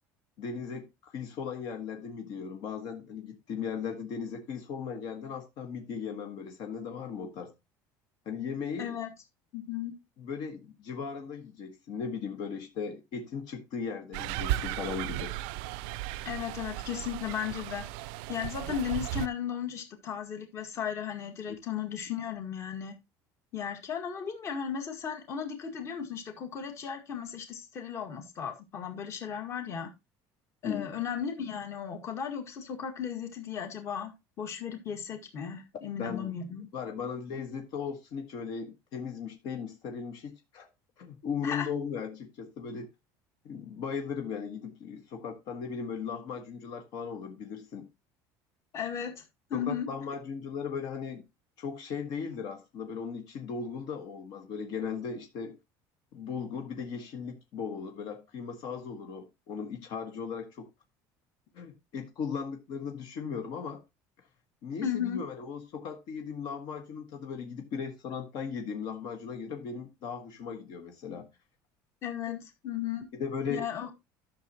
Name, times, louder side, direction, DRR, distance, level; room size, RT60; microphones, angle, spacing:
voice 1, 0.4-7.5 8.2-9.0 10.2-15.4 21.5-21.6 30.6-30.9 36.0-36.3 36.7-40.7 41.0-42.9 43.4-47.9 49.5-51.2 51.6-55.6 56.1-60.7 61.5-63.8 64.2-64.3 64.6-71.3 72.3-72.4 73.1-73.6, left 6 dB, 55° left, 1.5 m, -37 dB
voice 2, 8.8-9.1 9.5-9.9 16.3-17.8 18.3-22.9 23.5-29.9 30.6-34.1 34.4-36.7 41.4-41.7 48.7-49.2 49.5-49.9 64.8-65.2 72.0-73.1 73.5-73.9, left 8 dB, 35° left, 1.8 m, -35 dB
sound 1, 14.1-19.3, right 15 dB, 75° right, 0.5 m, -35 dB
12.0 x 6.6 x 2.9 m
cardioid pair, 160°, 9 cm